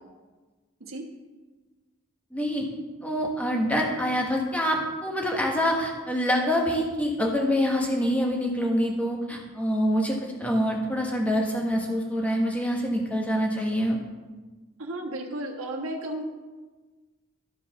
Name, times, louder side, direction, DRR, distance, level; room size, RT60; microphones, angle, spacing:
voice 1, 2.3-2.7 3.0-14.0, equal, 5° left, -1 dB, 1.3 m, -26 dB
voice 2, 14.8-16.2, right 1 dB, 80° right, 0 dB, 1.3 m, -33 dB
12.5 x 5.2 x 5.9 m, 1.3 s
head